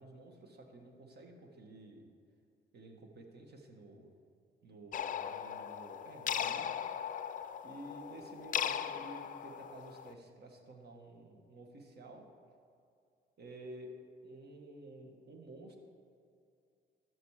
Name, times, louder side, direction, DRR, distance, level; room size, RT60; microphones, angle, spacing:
voice 1, 0.0-2.1 2.7-4.1 4.6-6.8 7.6-12.2 13.4-13.9 14.2-15.8, right 2 dB, 55° right, 3 dB, 1.5 m, -52 dB
sound 1, 4.9-10.1, left 9 dB, 40° left, 0.4 m, -38 dB
12.5 x 6.2 x 4.8 m, 2.4 s
cardioid pair, 90°, 20 cm